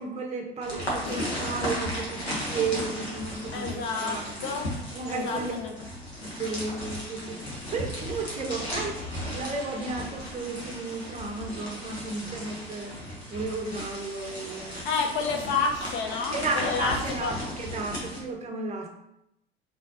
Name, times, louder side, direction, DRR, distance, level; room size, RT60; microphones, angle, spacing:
voice 1, 0.0-4.4 4.9-5.5 6.2-7.4 7.7-14.9 16.3-18.9, right 3 dB, 20° right, 2 dB, 0.7 m, -33 dB
sound 1, 0.6-18.2, equal, 85° left, 1.2 m, -35 dB
voice 2, 3.5-4.7 5.0-5.7 14.8-16.9 17.2-17.3, left 5 dB, 40° left, 4 dB, 0.5 m, -30 dB
4.3 x 3.0 x 2.6 m, 0.82 s
figure-of-eight pair, 75°, 31 cm